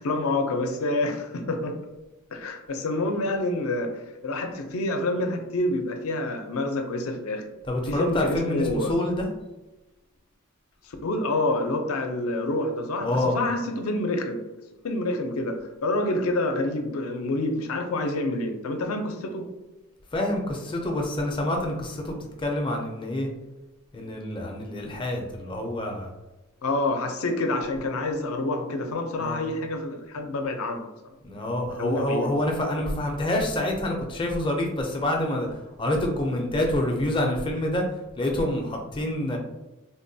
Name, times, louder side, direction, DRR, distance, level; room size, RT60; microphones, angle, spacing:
voice 1, 0.0-1.7 2.3-7.4 7.9-9.0 10.8-14.4 14.8-19.5 26.6-30.9 31.8-32.3, left 2 dB, 75° left, 5 dB, 0.5 m, -27 dB
voice 2, 7.6-9.3 13.0-13.4 20.1-23.3 23.9-26.1 29.2-29.4 31.2-37.9 38.2-39.4, left 1 dB, 20° left, 1 dB, 0.4 m, -27 dB
3.5 x 2.2 x 2.6 m, 1.1 s
head